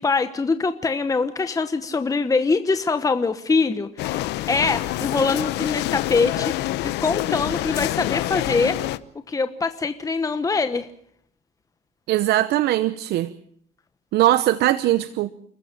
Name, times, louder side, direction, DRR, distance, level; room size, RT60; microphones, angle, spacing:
voice 1, 0.0-8.8 9.3-10.9, left 4 dB, 20° left, 1.1 m, -23 dB
sound 1, 4.0-9.0, left 16 dB, 85° left, 0.9 m, -26 dB
voice 2, 12.1-13.3 14.1-15.3, right 14 dB, 75° right, 0.9 m, -20 dB
29.0 x 14.5 x 7.6 m
cardioid pair, 110°, 17 cm